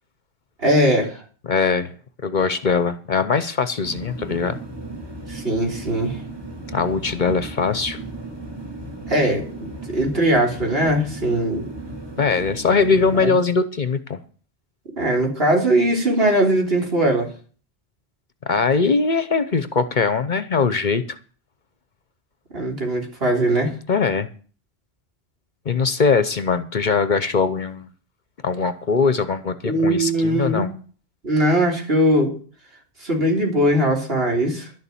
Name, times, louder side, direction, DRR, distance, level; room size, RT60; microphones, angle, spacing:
voice 1, 0.6-1.2 5.3-6.2 9.1-11.7 13.1-13.3 15.0-17.3 22.5-23.7 29.6-30.7 31.2-32.4 33.0-34.7, right 1 dB, 65° right, 0 dB, 3.7 m, -20 dB
voice 2, 1.5-1.9 2.2-4.6 6.7-8.0 12.2-14.2 18.5-21.2 23.9-24.3 25.7-27.9 28.4-30.7, left 5 dB, 50° left, 13 dB, 0.9 m, -21 dB
sound 1, 3.8-13.3, right 2 dB, 25° right, 2.0 m, -35 dB
11.5 x 7.1 x 8.4 m, 0.41 s
omnidirectional pair, 1.1 m